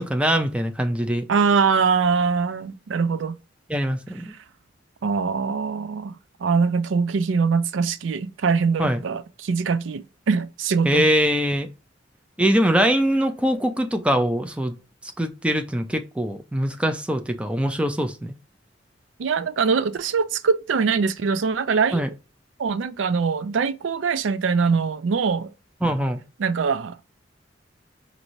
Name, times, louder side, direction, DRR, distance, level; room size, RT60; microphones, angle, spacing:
voice 1, 0.0-1.3 3.7-4.2 8.8-9.0 10.8-11.7 12.4-14.7 15.2-18.4 21.9-22.1 25.8-26.2, equal, 5° right, 0.5 m, -22 dB
voice 2, 1.3-3.4 5.0-6.2 6.4-11.1 19.2-22.1 22.6-25.5 26.4-27.0, right 5 dB, 85° right, 0.4 m, -23 dB
5.2 x 2.6 x 3.0 m
head